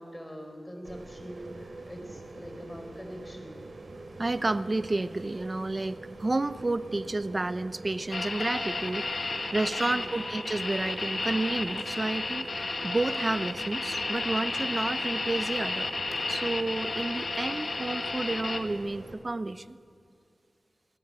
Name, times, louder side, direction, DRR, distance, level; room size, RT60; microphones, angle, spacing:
voice 1, 0.0-3.6 9.9-10.1, equal, 10° left, 4 dB, 4.5 m, -43 dB
sound 1, 0.8-19.1, right 2 dB, 65° right, 3.8 m, -45 dB
voice 2, 4.2-15.9 16.3-19.8, right 2 dB, 35° right, 13 dB, 0.7 m, -31 dB
sound 2, 8.1-18.6, left 3 dB, 65° left, 1.8 m, -32 dB
27.0 x 17.5 x 8.9 m, 2.3 s
wide cardioid pair, 90°, 0 cm